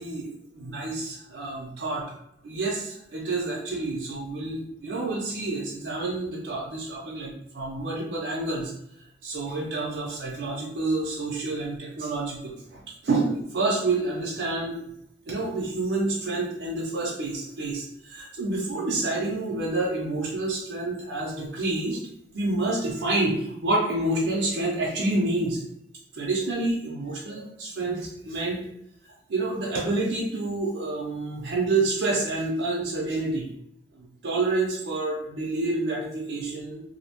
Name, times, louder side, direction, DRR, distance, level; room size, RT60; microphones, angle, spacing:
voice 1, 0.0-2.0 2.4-8.7 9.2-14.7 15.3-22.0 22.3-25.6 26.1-28.6 29.3-33.5 34.0-36.8, right 2 dB, 70° right, -4 dB, 0.5 m, -28 dB
2.5 x 2.1 x 2.8 m, 0.76 s
head